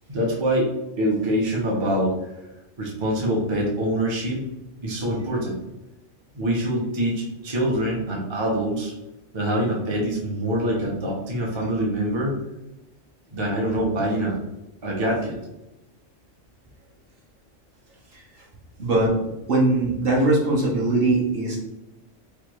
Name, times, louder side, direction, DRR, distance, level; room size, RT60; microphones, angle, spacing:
voice 1, 0.1-0.7 1.0-2.3 2.8-4.4 4.8-5.6 6.3-8.9 9.3-12.4 13.3-14.4 14.8-15.4, right 1 dB, 35° right, -2 dB, 0.5 m, -24 dB
voice 2, 18.8-19.1 19.5-21.6, right 2 dB, 55° right, -3 dB, 1.0 m, -20 dB
3.3 x 2.3 x 2.9 m, 0.95 s
omnidirectional pair, 1.3 m